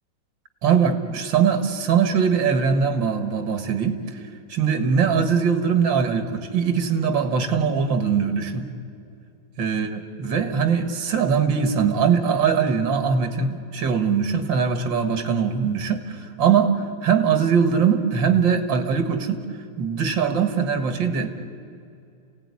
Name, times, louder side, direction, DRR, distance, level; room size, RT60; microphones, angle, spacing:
voice 1, 0.6-4.0 4.5-8.6 9.6-19.5 19.8-21.3, right 6 dB, 75° right, 8 dB, 2.5 m, -21 dB
29.0 x 17.5 x 9.8 m, 2.5 s
omnidirectional pair, 2.1 m